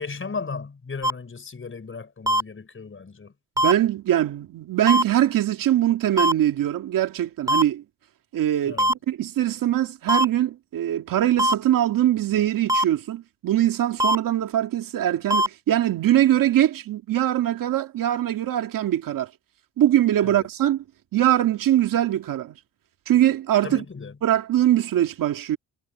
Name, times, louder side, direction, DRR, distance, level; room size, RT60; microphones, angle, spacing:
voice 1, 0.0-3.3 8.6-8.9 20.2-20.5 23.6-24.2, left 4 dB, 40° left, 6.2 m, -35 dB
sound 1, 1.0-1.1 2.3-2.4 3.6-3.7 4.9-5.0 6.2-6.3 7.5-7.6 8.8-8.9 10.1-10.2 11.4-11.5 12.7-12.8 14.0-14.2 15.3-15.5, equal, 10° right, 3.0 m, -20 dB
voice 2, 3.6-7.8 8.3-19.3 19.8-20.8 21.1-22.6 23.1-23.8 24.2-25.6, right 12 dB, 75° right, 2.4 m, -22 dB
supercardioid pair, 65°, 33 cm